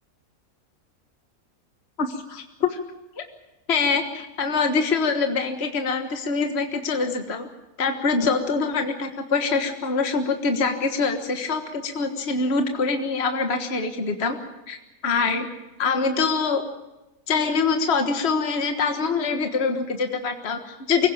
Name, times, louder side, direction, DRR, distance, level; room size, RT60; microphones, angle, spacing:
voice 1, 2.0-2.8 3.7-7.5 7.8-14.4 14.7-14.8 15.0-15.5 15.8-16.6 17.3-21.1, left 4 dB, 45° left, 6 dB, 1.7 m, -24 dB
24.5 x 17.0 x 8.6 m, 1.0 s
omnidirectional pair, 1.6 m